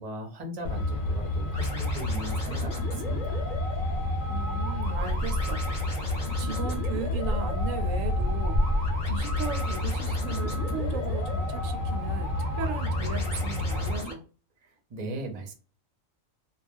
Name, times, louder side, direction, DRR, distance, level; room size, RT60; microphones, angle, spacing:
voice 1, 0.0-3.5 14.6-15.5, right 1 dB, 40° right, 0.6 m, -38 dB
Truck, 0.6-14.0, left 1 dB, 60° left, 0.5 m, -29 dB
sound 1, 1.5-14.1, left 1 dB, 35° left, 0.8 m, -38 dB
voice 2, 4.3-5.7 5.9-8.6 9.1-14.2, right 5 dB, 80° right, 0.9 m, -37 dB
2.3 x 2.2 x 3.3 m
omnidirectional pair, 1.3 m